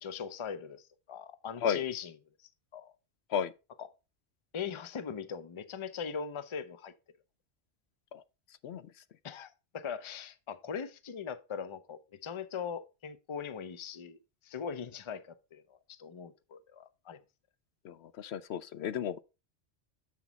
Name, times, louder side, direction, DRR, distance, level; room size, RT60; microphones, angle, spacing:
voice 1, 0.0-2.1 2.7-2.9 3.8-3.9 4.5-6.9 9.2-17.2, left 7 dB, 35° left, 0.6 m, -40 dB
voice 2, 17.8-19.2, left 8 dB, 75° left, 0.8 m, -33 dB
7.4 x 6.1 x 4.0 m
omnidirectional pair, 1.1 m